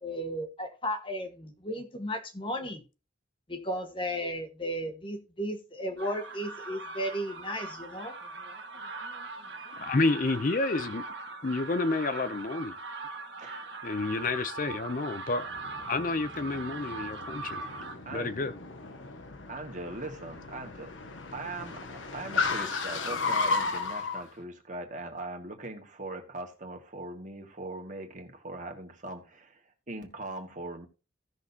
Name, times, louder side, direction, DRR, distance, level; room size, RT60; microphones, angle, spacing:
voice 1, 0.0-2.8 3.5-8.1, equal, 25° left, 1.3 m, -34 dB
sound 1, 6.0-18.0, right 3 dB, 65° right, 1.5 m, -41 dB
voice 2, 9.8-11.0 11.4-12.7 13.8-15.5 15.9-17.6 18.1-18.5, left 3 dB, 45° left, 0.5 m, -29 dB
voice 3, 13.4-13.7 17.6-18.5 19.5-20.9 21.3-29.6 29.9-30.9, right 2 dB, 40° right, 1.8 m, -40 dB
Car, 15.4-24.2, left 4 dB, 85° left, 1.2 m, -34 dB
16.0 x 6.3 x 2.8 m
head